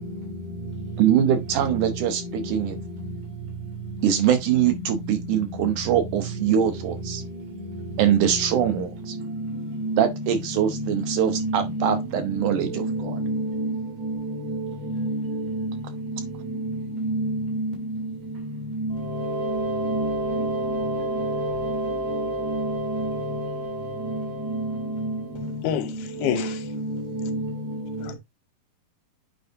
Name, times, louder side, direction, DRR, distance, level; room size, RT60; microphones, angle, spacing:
voice 1, 1.0-2.8 4.0-7.2 8.0-9.2 10.0-13.2, right 9 dB, 70° right, 2.0 m, -23 dB
voice 2, 11.3-12.0 12.8-13.7 15.0-15.6 17.0-17.7 19.9-20.1 20.3-20.4 27.2-27.4, right 1 dB, 90° right, 4.7 m, -27 dB
sound 1, 18.9-25.5, right 1 dB, 65° left, 0.5 m, -31 dB
voice 3, 25.4-27.0 28.0-28.2, left 9 dB, 85° left, 2.8 m, -29 dB
8.7 x 4.7 x 2.6 m
omnidirectional pair, 4.3 m